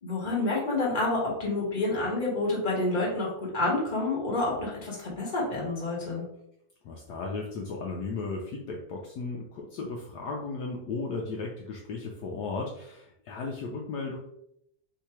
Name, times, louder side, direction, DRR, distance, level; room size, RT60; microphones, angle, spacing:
voice 1, 0.0-6.2, left 2 dB, 25° left, -3 dB, 1.4 m, -28 dB
voice 2, 6.8-14.2, left 3 dB, 70° left, 0 dB, 1.1 m, -35 dB
3.8 x 2.8 x 4.5 m, 0.77 s
omnidirectional pair, 1.9 m